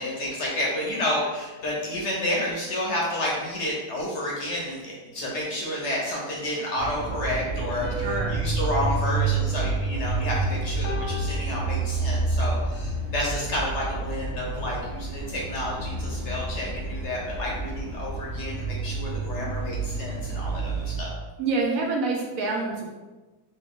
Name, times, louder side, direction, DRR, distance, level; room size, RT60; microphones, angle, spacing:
voice 1, 0.0-21.2, left 1 dB, 55° left, -3 dB, 0.9 m, -30 dB
sound 1, 6.8-21.0, right 3 dB, 35° right, 0.8 m, -29 dB
sound 2, 7.8-10.3 10.8-12.4, equal, 85° left, 1.2 m, -39 dB
voice 2, 8.0-8.4 21.4-22.9, right 3 dB, 70° right, 0 dB, 0.9 m, -27 dB
3.1 x 2.8 x 3.5 m, 1.2 s
omnidirectional pair, 1.6 m